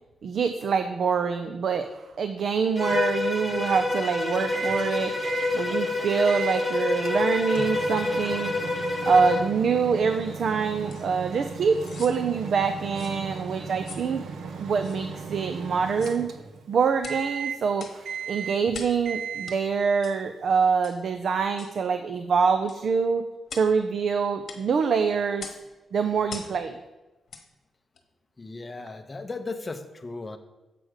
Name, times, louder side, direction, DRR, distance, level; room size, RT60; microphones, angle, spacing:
voice 1, 0.2-8.5 9.1-14.2 14.6-16.3 16.7-23.2 23.5-25.5 25.9-26.8, right 5 dB, 55° right, 8 dB, 0.4 m, -25 dB
Bowed string instrument, 2.8-9.5, left 2 dB, 5° right, 1.0 m, -27 dB
Microwave oven, 4.5-4.9 5.2-5.6 6.3-6.6 7.0-16.7 17.0-17.7 18.0-18.7 19.0-19.7, right 6 dB, 80° right, 0.8 m, -36 dB
sound 1, 10.9-11.1 11.7-12.2 12.9-13.2 13.8-14.1 14.8-15.0 15.9-16.2 17.0-17.2 17.8-18.0 18.7-19.0 19.5-19.6 20.0-20.2 20.8-21.0 21.6-21.8 22.7-22.8 23.5-23.7 24.5-24.6 25.4-25.6 26.3-26.6 27.3-27.5 27.9-28.0, left 5 dB, 50° left, 1.1 m, -42 dB
voice 2, 28.4-30.4, left 3 dB, 20° left, 8 dB, 0.6 m, -36 dB
7.7 x 4.8 x 6.3 m, 1.1 s
wide cardioid pair, 165°, 0 cm